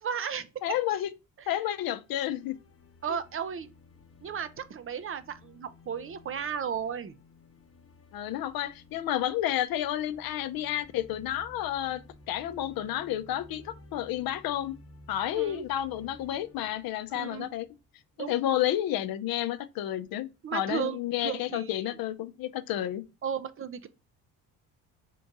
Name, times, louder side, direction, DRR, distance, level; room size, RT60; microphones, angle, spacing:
voice 1, 0.0-0.7 1.4-1.5 3.0-3.7 4.2-7.1 15.3-15.6 17.1-17.5 18.2-18.3 20.4-21.0 21.2-21.7 23.2-23.9, right 7 dB, 35° right, 0.5 m, -34 dB
voice 2, 0.6-1.1 1.5-2.6 3.1-3.2 8.1-12.0 12.3-14.7 15.1-17.7 18.3-23.0, left 12 dB, 65° left, 0.6 m, -31 dB
sound 1, 1.9-18.0, left 2 dB, 35° left, 0.9 m, -55 dB
3.7 x 2.6 x 4.6 m
supercardioid pair, 70°, 39 cm